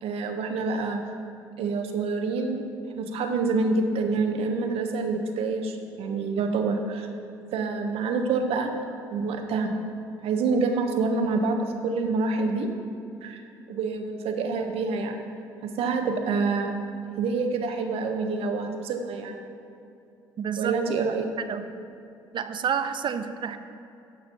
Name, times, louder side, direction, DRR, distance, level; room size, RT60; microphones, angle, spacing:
voice 1, 0.0-1.0 1.6-2.6 3.0-7.1 7.5-8.7 9.1-9.7 10.2-12.7 13.2-13.4 13.7-15.2 15.6-16.7 17.1-19.4 20.6-21.3, right 4 dB, 65° right, 4 dB, 1.0 m, -27 dB
voice 2, 20.4-20.8 21.4-21.7 22.3-23.6, right 7 dB, 45° right, 10 dB, 0.6 m, -29 dB
11.0 x 4.2 x 5.7 m, 2.7 s
hypercardioid pair, 55°, 11 cm